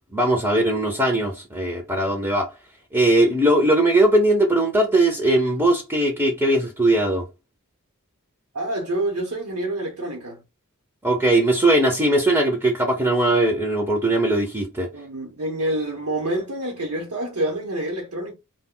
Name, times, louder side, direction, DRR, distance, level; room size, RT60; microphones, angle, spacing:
voice 1, 0.1-2.5 2.9-7.2 11.0-14.9, right 1 dB, 10° right, 0.5 m, -19 dB
voice 2, 8.5-10.4 14.9-18.3, right 1 dB, 85° right, 0.8 m, -27 dB
2.2 x 2.1 x 3.6 m
head